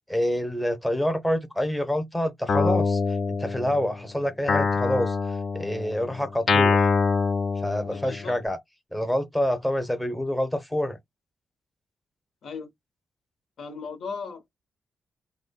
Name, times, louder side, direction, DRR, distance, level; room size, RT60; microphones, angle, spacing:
voice 1, 0.1-6.9 7.6-8.6 8.9-11.0, equal, 5° left, 0.8 m, -27 dB
Guitar, 2.5-4.0 4.5-8.4, left 4 dB, 50° left, 0.6 m, -25 dB
voice 2, 7.9-8.3 12.4-12.7 13.6-14.4, left 5 dB, 65° left, 1.0 m, -36 dB
2.9 x 2.2 x 4.0 m
wide cardioid pair, 130°, 0 cm